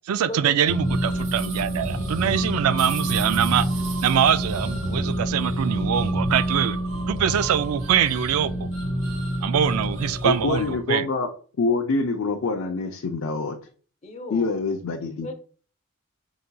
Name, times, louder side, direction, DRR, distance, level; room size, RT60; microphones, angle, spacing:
voice 1, 0.1-3.7 4.0-6.8 7.1-8.7 9.4-11.1, right 8 dB, 90° right, 0.4 m, -23 dB
sound 1, 0.7-10.8, right 1 dB, 65° right, 1.3 m, -27 dB
voice 2, 10.2-11.3 11.6-13.6 14.3-15.3, left 3 dB, 70° left, 0.5 m, -25 dB
voice 3, 14.0-14.5 15.2-15.3, left 1 dB, 30° left, 0.7 m, -35 dB
4.8 x 4.0 x 2.2 m
head